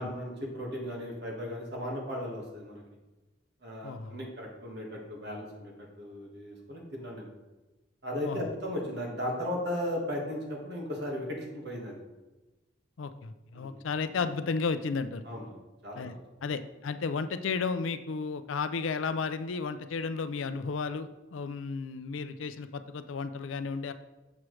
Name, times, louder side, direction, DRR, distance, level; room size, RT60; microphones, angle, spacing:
voice 1, 0.0-2.8 3.6-5.7 6.0-7.3 8.0-12.0 13.5-13.7 15.3-15.5 15.8-16.2, left 1 dB, 55° right, -1 dB, 1.6 m, -36 dB
voice 2, 3.8-4.2 8.2-8.5 13.0-15.3 16.0-16.1 16.4-23.9, left 4 dB, 90° left, 11 dB, 0.4 m, -33 dB
7.1 x 6.2 x 3.2 m, 1.1 s
head